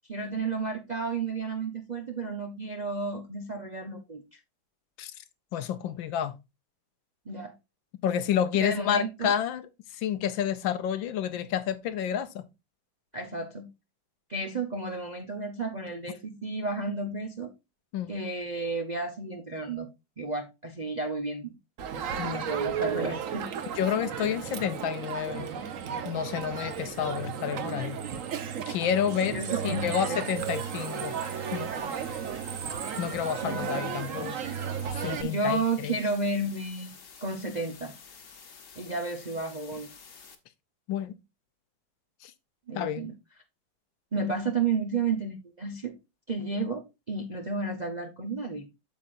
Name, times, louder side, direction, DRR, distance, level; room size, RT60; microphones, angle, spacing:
voice 1, 0.1-4.4 7.3-7.5 8.6-9.3 13.1-13.7 14.3-17.5 18.1-19.9 20.2-21.5 22.2-23.5 29.2-30.2 33.4-34.3 35.2-36.9 37.2-37.9 38.8-39.9 42.7-43.1 44.1-46.0 46.3-48.7, right 3 dB, 40° right, 0.6 m, -32 dB
voice 2, 5.5-6.4 8.0-9.7 9.9-12.4 17.9-18.1 22.2-22.5 23.8-25.5 26.0-28.0 28.7-31.2 31.5-31.7 33.0-34.4 35.0-36.0 40.9-41.1 42.2-42.3 42.8-43.1, left 9 dB, 80° left, 1.5 m, -30 dB
Crowd, 21.8-35.2, right 7 dB, 55° right, 1.0 m, -34 dB
sound 1, 30.4-40.4, left 6 dB, 45° left, 1.3 m, -50 dB
8.6 x 7.5 x 2.5 m
omnidirectional pair, 2.1 m